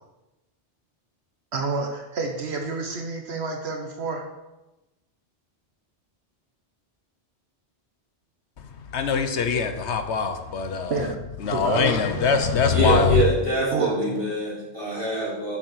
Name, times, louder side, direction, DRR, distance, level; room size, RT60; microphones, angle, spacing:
voice 1, 1.5-4.2 10.9-11.2 11.5-12.3 13.7-14.2, right 3 dB, 70° right, 1.2 m, -29 dB
voice 2, 8.9-11.0 11.4-13.2, left 5 dB, 80° left, 1.2 m, -23 dB
voice 3, 12.7-15.6, right 1 dB, 30° right, 4.1 m, -24 dB
7.4 x 7.3 x 6.3 m
omnidirectional pair, 1.1 m